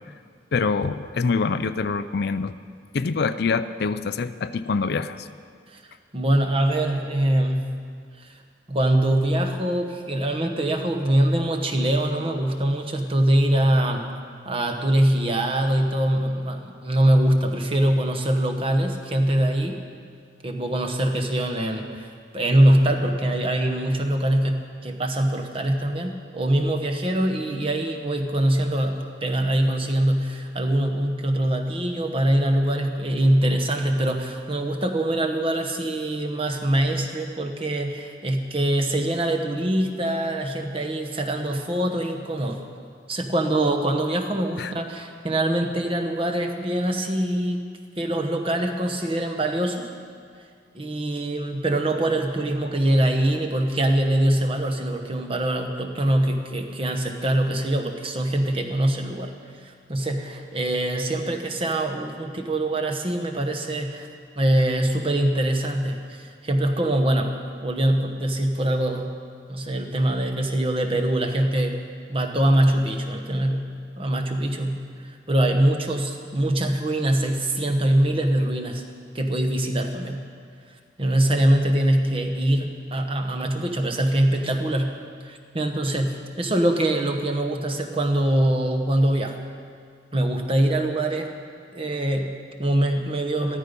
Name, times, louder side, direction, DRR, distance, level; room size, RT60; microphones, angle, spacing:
voice 1, 0.5-2.5 2.9-5.3 44.6-44.7, left 4 dB, 60° left, 12 dB, 0.4 m, -25 dB
voice 2, 6.1-7.8 8.2-8.3 8.7-14.1 14.4-19.8 20.4-22.1 22.3-42.6 43.1-47.6 48.0-49.9 50.7-59.3 59.6-64.1 64.4-69.1 69.5-71.8 72.1-73.7 74.0-78.8 79.1-80.3 81.0-85.0 85.2-89.4 90.1-91.3 91.7-93.6, right 1 dB, 30° right, 4 dB, 1.1 m, -23 dB
13.5 x 13.5 x 5.3 m, 2.1 s
head